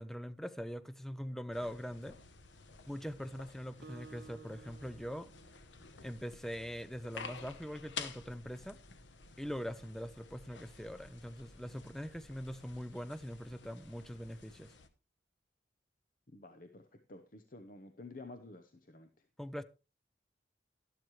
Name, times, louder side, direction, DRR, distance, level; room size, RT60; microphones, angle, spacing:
voice 1, 0.0-2.2 2.9-5.3 6.0-8.8 9.4-14.7 19.4-19.6, equal, ahead, 0.5 m, -42 dB
sound 1, 1.5-14.9, left 5 dB, 90° left, 1.0 m, -51 dB
Acoustic guitar, 3.8-6.6, right 4 dB, 60° right, 1.1 m, -56 dB
voice 2, 16.3-19.2, left 2 dB, 45° left, 0.9 m, -51 dB
12.0 x 12.0 x 3.2 m
head